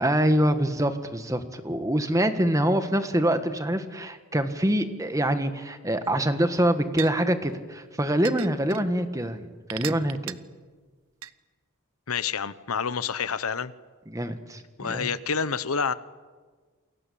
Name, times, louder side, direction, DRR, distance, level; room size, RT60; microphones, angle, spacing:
voice 1, 0.0-10.4 14.1-15.1, right 1 dB, 15° right, 9 dB, 1.6 m, -25 dB
sound 1, 6.0-6.1 7.0-7.1 8.2-8.8 9.7-10.3 11.2-11.3, right 11 dB, 75° right, 0.9 m, -35 dB
voice 2, 12.1-13.7 14.8-15.9, left 6 dB, 85° left, 15 dB, 1.0 m, -28 dB
29.0 x 22.5 x 8.6 m, 1.4 s
head